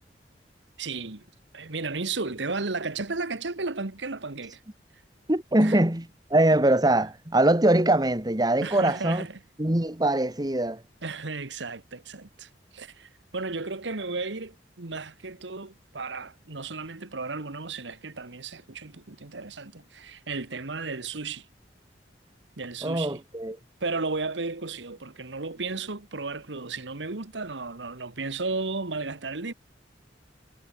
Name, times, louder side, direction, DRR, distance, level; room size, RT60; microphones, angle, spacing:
voice 1, 0.8-1.3 1.5-4.6 5.6-5.8 8.6-9.4 11.0-21.5 22.6-23.2 23.8-29.5, right 3 dB, 85° right, 1.5 m, -34 dB
voice 2, 5.3-6.1 6.3-9.3 9.6-10.8 22.8-23.6, right 1 dB, 20° right, 1.8 m, -22 dB
head